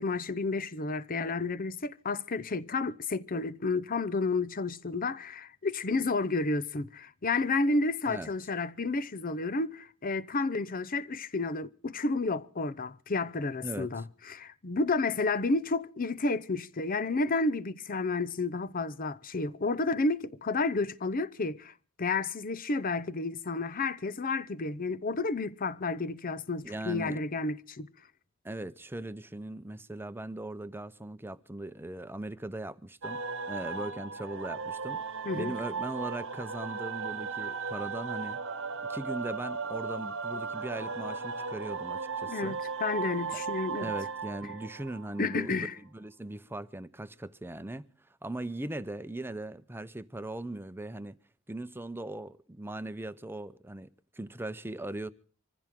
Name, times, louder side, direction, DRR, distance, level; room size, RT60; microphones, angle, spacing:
voice 1, 0.0-21.7 22.0-27.9 35.2-35.5 42.3-42.6 42.8-43.9 45.2-45.8, left 3 dB, 40° left, 0.7 m, -31 dB
voice 2, 13.6-14.0 26.6-27.2 28.4-38.4 38.9-42.6 43.3-43.4 43.8-47.9 48.2-51.2 51.5-55.1, right 1 dB, 10° right, 0.7 m, -39 dB
sound 1, 33.0-45.6, right 5 dB, 65° right, 1.2 m, -36 dB
25.0 x 15.0 x 3.7 m
head